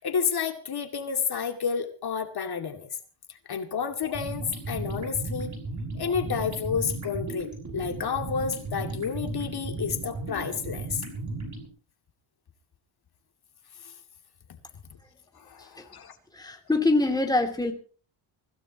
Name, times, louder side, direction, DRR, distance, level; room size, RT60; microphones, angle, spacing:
voice 1, 0.0-2.9 3.3-5.5 5.9-11.1 13.8-13.9 15.3-16.1, left 6 dB, 50° left, 6 dB, 2.4 m, -30 dB
sound 1, 4.0-11.7, right 2 dB, 35° right, 6.7 m, -35 dB
voice 2, 16.3-17.7, left 2 dB, 10° left, 4 dB, 2.6 m, -25 dB
24.5 x 16.5 x 3.0 m, 0.39 s
cardioid pair, 135°, 49 cm